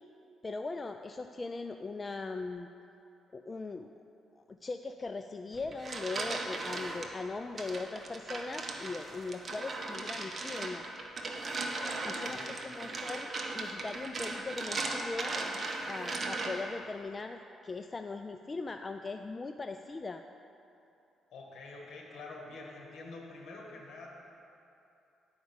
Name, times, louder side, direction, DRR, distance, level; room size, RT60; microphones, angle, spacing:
voice 1, 0.4-2.7 3.3-3.9 4.4-10.9 12.0-15.3 15.8-20.2, left 3 dB, 30° left, 6 dB, 0.3 m, -40 dB
sound 1, 5.5-7.1 7.6-16.8, right 2 dB, 35° right, 1.1 m, -37 dB
voice 2, 11.8-12.7 21.3-24.1, left 3 dB, 65° left, 0 dB, 1.9 m, -47 dB
10.5 x 5.1 x 7.1 m, 2.8 s
cardioid pair, 90°, 0 cm